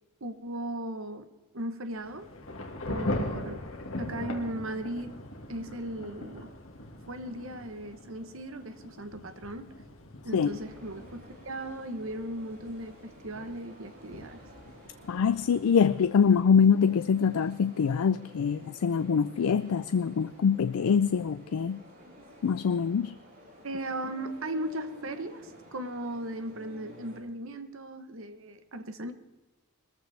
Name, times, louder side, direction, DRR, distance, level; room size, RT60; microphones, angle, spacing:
voice 1, 0.2-2.3 2.9-3.6 4.0-5.2 5.5-6.5 7.1-9.7 10.2-14.4 23.6-29.1, right 1 dB, 65° right, 9 dB, 1.1 m, -37 dB
Thunder / Rain, 1.9-16.4, left 1 dB, 70° left, 2.0 m, -41 dB
sound 1, 10.3-27.2, equal, 45° right, 3.9 m, -52 dB
voice 2, 15.1-21.8 22.4-23.1, left 6 dB, 85° left, 14 dB, 0.4 m, -24 dB
21.0 x 14.0 x 3.4 m, 1.2 s
head